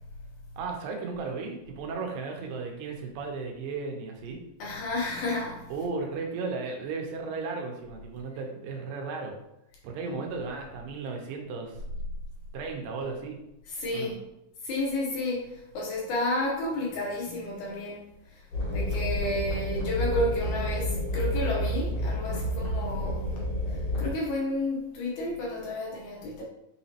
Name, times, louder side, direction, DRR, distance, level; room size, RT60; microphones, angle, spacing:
voice 1, 0.6-4.4 5.7-9.3 9.8-11.8 12.5-13.4 13.9-14.1, right 4 dB, 85° right, 2 dB, 2.5 m, -35 dB
voice 2, 4.6-5.7 10.1-10.2 13.7-14.2 14.6-18.4 18.7-23.3 24.0-26.4, left 1 dB, 70° left, -3 dB, 2.0 m, -31 dB
sound 1, 18.5-24.1, left 1 dB, 55° left, 2.2 m, -29 dB
5.7 x 3.0 x 2.8 m, 0.84 s
omnidirectional pair, 4.0 m